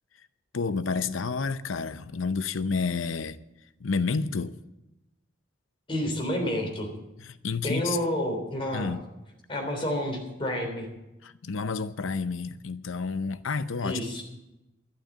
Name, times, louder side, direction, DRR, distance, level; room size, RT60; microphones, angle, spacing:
voice 1, 0.5-3.4 3.8-4.6 7.2-8.0 8.7-9.0 11.2-14.2, left 4 dB, 80° left, 0.7 m, -30 dB
voice 2, 5.9-6.9 7.6-8.9 9.5-10.9 13.8-14.2, left 1 dB, 25° left, 3.5 m, -29 dB
12.0 x 11.5 x 7.4 m
head